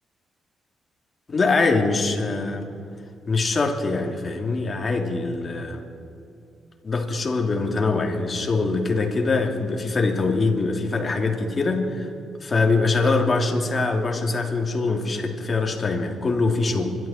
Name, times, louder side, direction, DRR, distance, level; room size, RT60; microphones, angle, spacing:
voice 1, 1.3-2.7 3.3-5.8 6.8-12.1 12.4-17.0, left 3 dB, 40° left, 2 dB, 2.8 m, -23 dB
25.5 x 13.0 x 4.5 m, 2.7 s
supercardioid pair, 55°, 0 cm